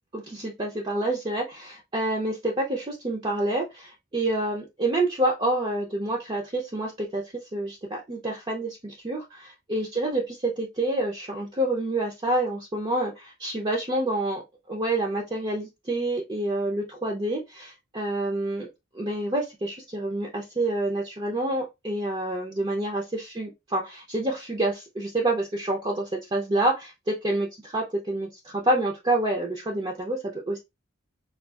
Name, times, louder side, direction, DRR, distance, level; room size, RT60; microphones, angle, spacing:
voice 1, 0.1-14.4 14.7-18.7 18.9-30.6, right 1 dB, 25° right, -1 dB, 0.5 m, -28 dB
3.5 x 2.3 x 2.3 m, 0.22 s
head